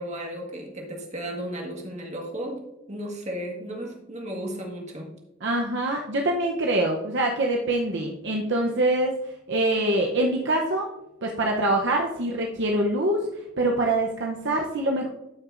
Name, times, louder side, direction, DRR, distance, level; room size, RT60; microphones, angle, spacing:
voice 1, 0.0-5.1, right 1 dB, 35° right, 0 dB, 1.6 m, -34 dB
voice 2, 5.4-9.1 9.5-10.9 11.2-13.3 13.6-15.1, right 1 dB, 60° right, 0 dB, 0.8 m, -24 dB
13.0 x 6.0 x 2.6 m, 0.90 s
head